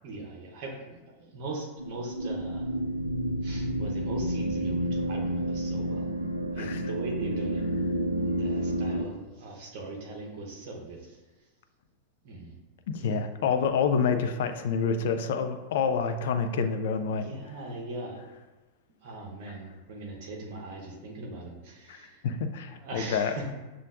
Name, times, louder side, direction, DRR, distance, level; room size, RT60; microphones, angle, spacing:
voice 1, 0.0-2.7 3.4-6.1 6.5-7.6 8.2-11.2 12.2-12.6 13.0-13.2 17.1-18.2 19.0-22.2 22.7-23.5, right 2 dB, 45° right, -1 dB, 0.8 m, -40 dB
sound 1, 1.8-9.0, right 1 dB, 80° right, 0.4 m, -30 dB
voice 2, 12.9-17.3 21.9-23.3, left 6 dB, 55° left, 7 dB, 0.4 m, -28 dB
7.2 x 2.5 x 2.4 m, 1.2 s
figure-of-eight pair, 90°, 0 cm